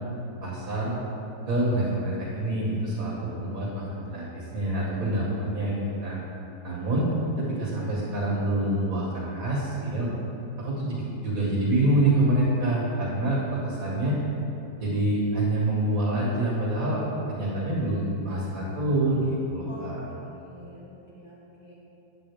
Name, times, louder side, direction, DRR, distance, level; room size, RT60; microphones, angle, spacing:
voice 1, 0.4-0.9 1.5-6.2 6.6-7.1 7.4-10.1 10.6-14.2 14.8-17.0 17.4-20.0, right 1 dB, 40° right, -5 dB, 2.1 m, -26 dB
voice 2, 6.7-7.0 19.6-19.9 20.3-21.7, left 2 dB, 50° left, -7 dB, 1.3 m, -47 dB
8.9 x 7.8 x 3.6 m, 2.9 s
omnidirectional pair, 2.3 m